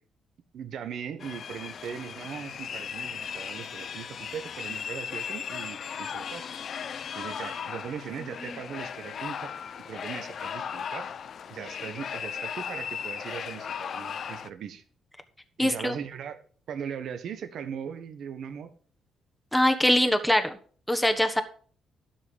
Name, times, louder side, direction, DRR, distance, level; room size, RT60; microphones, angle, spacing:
voice 1, 0.5-6.5 7.1-9.5 9.8-11.1 11.5-14.8 15.6-16.4 16.7-18.7, right 8 dB, 70° right, 9 dB, 1.3 m, -39 dB
sound 1, 1.2-14.5, left 7 dB, 55° left, 0.7 m, -37 dB
voice 2, 15.6-16.0 19.5-20.6 20.9-21.4, left 1 dB, 5° left, 6 dB, 1.3 m, -23 dB
12.0 x 5.6 x 7.0 m, 0.44 s
cardioid pair, 90°, 0 cm